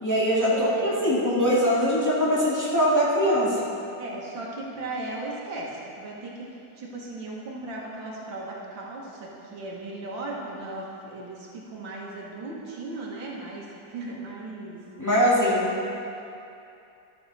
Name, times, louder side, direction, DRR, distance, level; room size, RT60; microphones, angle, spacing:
voice 1, 0.0-3.6 15.0-15.8, equal, 10° left, -8 dB, 1.6 m, -22 dB
voice 2, 0.5-0.9 4.0-13.7 13.9-14.8 15.4-15.7, right 2 dB, 90° right, -3 dB, 2.2 m, -37 dB
13.0 x 6.7 x 4.1 m, 2.7 s
omnidirectional pair, 2.0 m